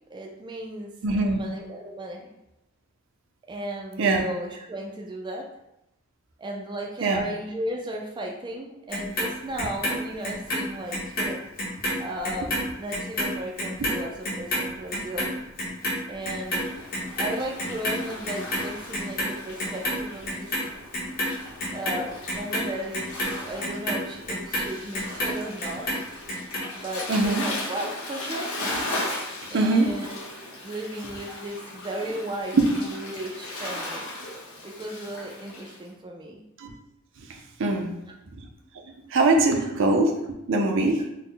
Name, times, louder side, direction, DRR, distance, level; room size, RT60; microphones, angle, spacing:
voice 1, 0.1-0.9 1.2-2.3 3.5-5.5 6.4-11.4 12.0-15.3 16.1-16.7 17.2-20.5 21.7-25.9 26.7-28.5 29.5-30.3 30.6-34.1 34.6-36.4 39.6-39.7, right 1 dB, 20° right, 0 dB, 0.4 m, -35 dB
voice 2, 1.0-1.4 4.0-4.2 7.0-7.2 27.1-27.5 29.5-29.9 32.5-32.7 36.6-36.7 37.6-37.9 39.1-40.1 40.5-41.0, right 2 dB, 65° right, 3 dB, 0.5 m, -21 dB
Clock, 8.9-11.3 11.6-18.0 18.2-19.3 19.6-20.6 20.9-25.3 25.6-26.6 27.0-27.1, equal, 45° left, 1.1 m, -29 dB
Waves surf, 16.3-35.8, left 1 dB, 90° left, 0.9 m, -37 dB
4.0 x 2.1 x 3.8 m, 0.88 s
head